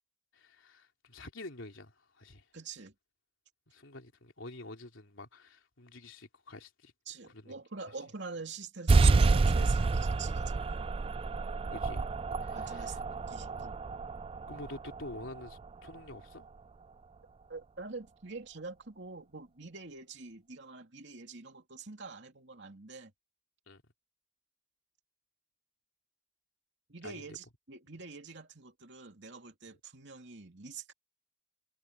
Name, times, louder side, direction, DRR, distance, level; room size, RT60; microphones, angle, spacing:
voice 1, 0.3-2.5 3.7-6.9 7.2-7.6 11.7-12.1 12.4-13.0 13.6-13.8 14.5-16.5 23.7-23.8 27.0-27.3, left 2 dB, 80° left, 3.2 m, -48 dB
voice 2, 2.5-2.9 7.1-11.1 12.5-13.0 13.3-13.8 17.5-23.1 26.9-30.9, right 4 dB, 60° right, 2.9 m, -46 dB
sound 1, 8.9-16.0, right 3 dB, 30° right, 0.3 m, -29 dB
head